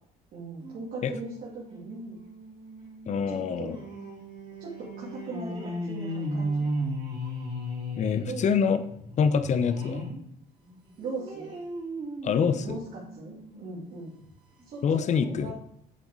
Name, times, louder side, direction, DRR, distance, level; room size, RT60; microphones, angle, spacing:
voice 1, 0.3-2.2 3.3-3.8 4.6-6.7 8.3-8.5 11.0-11.6 12.6-14.2 14.6-15.5, right 3 dB, 55° right, -5 dB, 2.7 m, -39 dB
sound 1, 0.6-10.2 10.7-13.7 14.2-14.3 14.6-14.7, equal, 30° right, 4.2 m, -36 dB
voice 2, 3.1-3.8 8.0-8.8 9.2-10.0 12.2-12.8 14.8-15.5, left 6 dB, 45° left, 11 dB, 0.8 m, -25 dB
9.3 x 7.0 x 4.7 m, 0.73 s
cardioid pair, 110°, 17 cm